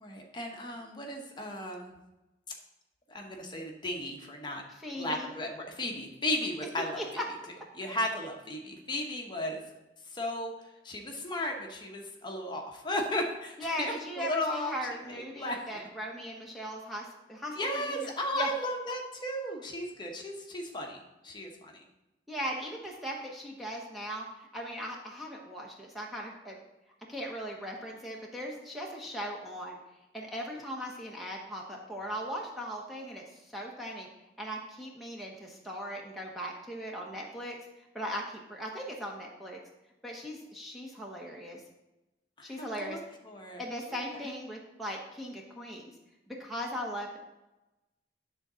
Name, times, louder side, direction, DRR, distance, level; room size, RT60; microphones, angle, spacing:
voice 1, 0.0-1.9 3.1-4.6 5.0-7.0 7.7-9.6 10.1-10.5 10.8-14.7 15.1-15.6 17.5-21.8 42.4-43.6, left 1 dB, 25° left, 1 dB, 1.0 m, -35 dB
voice 2, 4.8-5.3 7.0-7.2 13.6-18.5 22.3-26.6 27.1-29.8 30.1-34.1 34.4-37.6 37.9-39.6 40.0-41.6 42.4-43.0 43.6-45.9 46.3-47.2, equal, ahead, -2 dB, 0.9 m, -38 dB
9.7 x 3.9 x 6.1 m, 0.99 s
head